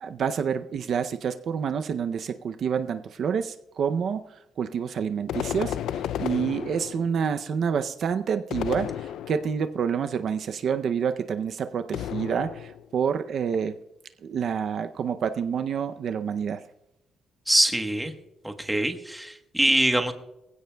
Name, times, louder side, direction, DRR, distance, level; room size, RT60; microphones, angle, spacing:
voice 1, 0.0-13.7 14.2-16.6, right 7 dB, 45° right, 8 dB, 0.5 m, -28 dB
sound 1, 5.3-7.2 8.5-9.7 11.9-12.9, left 10 dB, 85° left, 0.4 m, -32 dB
voice 2, 17.5-18.1 18.4-20.1, right 1 dB, 5° right, 5 dB, 1.1 m, -23 dB
24.0 x 16.0 x 2.3 m, 0.91 s
cardioid pair, 175°, 0 cm